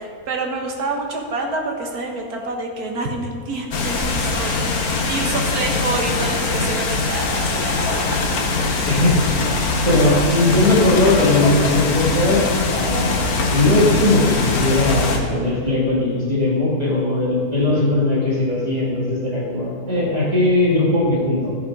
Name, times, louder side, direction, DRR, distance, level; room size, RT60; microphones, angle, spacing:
voice 1, 0.0-8.3 9.9-10.0, right 3 dB, 80° right, 1 dB, 1.9 m, -27 dB
sound 1, 3.7-15.2, left 3 dB, 75° left, 1.6 m, -22 dB
voice 2, 9.8-12.4 12.7-21.5, left 2 dB, 25° right, -6 dB, 2.5 m, -19 dB
13.0 x 6.7 x 5.2 m, 2.1 s
omnidirectional pair, 1.6 m